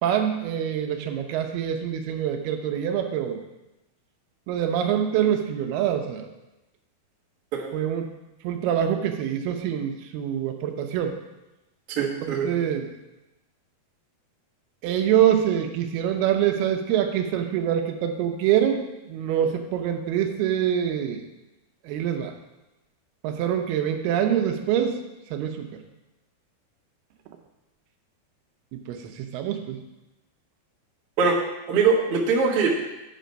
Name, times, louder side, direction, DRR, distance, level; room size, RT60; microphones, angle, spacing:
voice 1, 0.0-3.4 4.5-6.3 7.7-8.1 8.4-11.1 12.0-12.8 14.8-18.8 19.1-21.2 21.9-22.3 23.2-25.0 25.3-25.7 28.9-29.0 29.3-29.8, right 9 dB, 80° right, 5 dB, 2.6 m, -25 dB
voice 2, 11.9-12.5 31.2-31.4 31.7-32.7, right 5 dB, 60° right, -3 dB, 1.6 m, -22 dB
9.1 x 5.6 x 5.2 m, 0.99 s
omnidirectional pair, 4.5 m